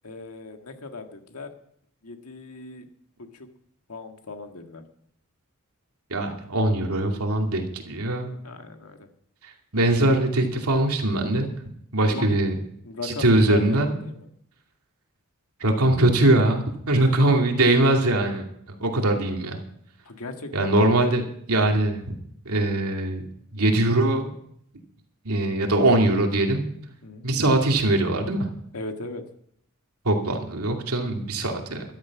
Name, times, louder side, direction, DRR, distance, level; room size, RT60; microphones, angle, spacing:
voice 1, 0.0-1.5 2.0-2.9 3.2-3.5 3.9-4.8 8.4-9.1 12.0-12.4 12.8-14.3 17.2-17.4 20.1-20.9 27.0-27.3 28.7-29.2, left 3 dB, 85° left, 5 dB, 1.8 m, -37 dB
voice 2, 6.1-8.3 9.7-11.5 11.9-12.5 13.0-14.0 15.6-18.5 18.8-19.6 20.5-22.2 22.4-24.3 25.2-26.6 27.2-28.5 30.0-31.8, right 1 dB, 90° right, 2 dB, 2.6 m, -22 dB
13.5 x 12.0 x 6.1 m, 0.69 s
head